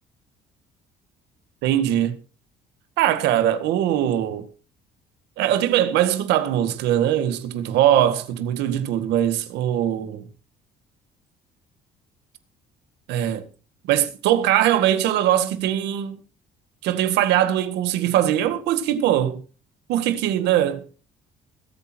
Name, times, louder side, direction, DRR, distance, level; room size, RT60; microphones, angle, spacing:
voice 1, 1.6-2.2 3.0-4.5 5.4-10.3 13.1-13.4 13.9-16.2 16.8-19.4 19.9-20.8, right 11 dB, 85° right, 1.8 m, -21 dB
20.5 x 8.9 x 4.5 m
cardioid pair, 110°, 17 cm